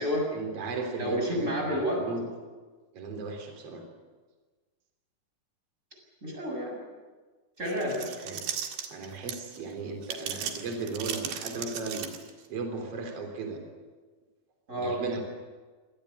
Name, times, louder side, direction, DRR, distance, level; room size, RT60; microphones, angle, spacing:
voice 1, 0.3-2.3 2.9-3.8 8.0-8.4 8.9-12.1 12.5-13.6 14.7-15.2, right 4 dB, 40° right, 4 dB, 4.2 m, -36 dB
voice 2, 1.0-2.1 6.2-6.8 7.6-8.1 14.7-15.0, equal, 15° right, 0 dB, 7.5 m, -30 dB
sound 1, 7.7-9.6 10.0-12.5, right 8 dB, 85° right, 4.0 m, -36 dB
26.0 x 18.5 x 8.6 m, 1.4 s
omnidirectional pair, 4.7 m